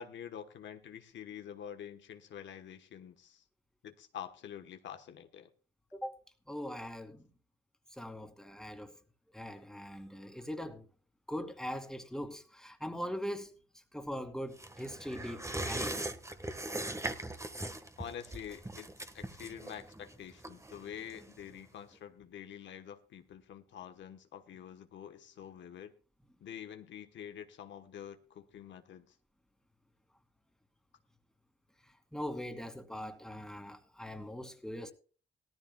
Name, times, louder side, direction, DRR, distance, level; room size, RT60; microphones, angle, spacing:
voice 1, 0.0-3.4 3.8-5.5 18.0-25.9 26.4-29.1, left 9 dB, 80° left, 1.2 m, -47 dB
voice 2, 6.5-7.2 7.9-8.9 9.3-10.9 11.3-13.5 13.9-16.1 32.1-34.9, equal, 5° left, 2.3 m, -41 dB
sound 1, 14.6-21.6 21.9-22.0, right 1 dB, 15° right, 1.4 m, -40 dB
17.5 x 13.5 x 2.3 m
supercardioid pair, 55°, 19 cm